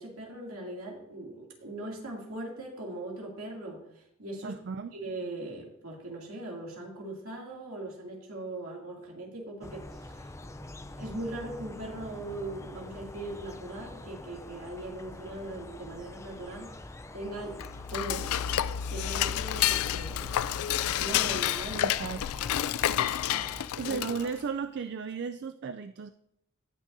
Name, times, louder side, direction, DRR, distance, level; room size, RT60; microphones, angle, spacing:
voice 1, 0.0-4.6 4.9-10.3 10.9-17.6 17.9-18.3 18.9-21.9 23.4-23.6 23.9-24.3, right 1 dB, 75° right, -1 dB, 2.6 m, -40 dB
voice 2, 4.4-4.9 21.7-22.2 23.8-26.1, right 5 dB, 50° right, 10 dB, 0.4 m, -35 dB
sound 1, 9.6-23.7, left 1 dB, 15° left, 0.5 m, -45 dB
Dishes pots and pans / Cutlery silverware, 17.5-24.4, left 11 dB, 75° left, 0.3 m, -29 dB
18.0 x 6.2 x 2.7 m, 0.77 s
head